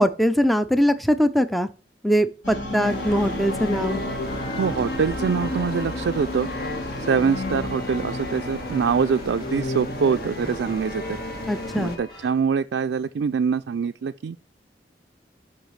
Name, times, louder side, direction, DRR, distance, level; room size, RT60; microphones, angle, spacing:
voice 1, 0.0-1.7 2.0-4.0 11.5-12.0, equal, ahead, 0.4 m, -21 dB
sound 1, 2.4-10.6, left 1 dB, 85° left, 3.8 m, -34 dB
sound 2, 2.8-12.0, left 2 dB, 55° left, 1.6 m, -32 dB
sound 3, 2.8-12.3, left 1 dB, 25° left, 5.9 m, -43 dB
voice 2, 4.5-6.5 7.0-11.2 11.8-14.4, right 6 dB, 80° right, 0.4 m, -24 dB
13.0 x 5.6 x 3.2 m
head